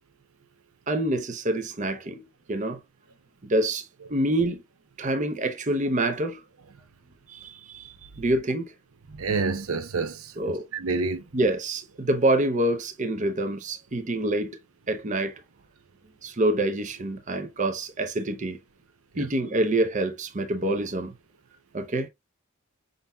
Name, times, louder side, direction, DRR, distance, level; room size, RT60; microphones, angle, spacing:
voice 1, 0.9-2.2 2.5-2.8 3.4-4.6 5.0-6.4 7.3-8.7 10.4-10.6 11.3-14.6 14.9-15.4 16.2-18.6 19.2-21.1 21.7-22.1, right 1 dB, 35° right, 0.6 m, -26 dB
voice 2, 9.1-10.3 10.7-11.2 19.2-19.3, right 4 dB, 70° right, 0.6 m, -28 dB
5.4 x 3.9 x 2.2 m
head